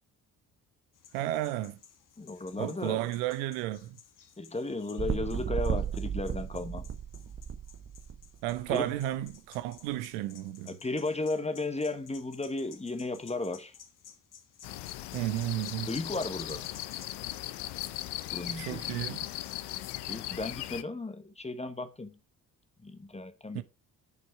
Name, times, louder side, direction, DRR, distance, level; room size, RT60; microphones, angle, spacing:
sound 1, 0.9-17.1, left 8 dB, 40° left, 1.3 m, -56 dB
voice 1, 1.1-1.8 2.6-4.0 8.4-10.8 15.1-15.9 18.5-19.3 23.5-23.6, right 14 dB, 70° right, 0.7 m, -33 dB
voice 2, 2.2-3.0 4.4-6.9 8.7-8.9 10.7-13.7 15.9-16.6 18.3-18.9 20.1-22.2 22.8-23.6, left 2 dB, 15° left, 1.2 m, -35 dB
sound 2, 5.0-8.7 9.3-9.4, right 7 dB, 30° right, 0.9 m, -34 dB
sound 3, 14.6-20.8, left 15 dB, 60° left, 0.7 m, -38 dB
6.8 x 5.2 x 4.8 m
figure-of-eight pair, 45°, 48 cm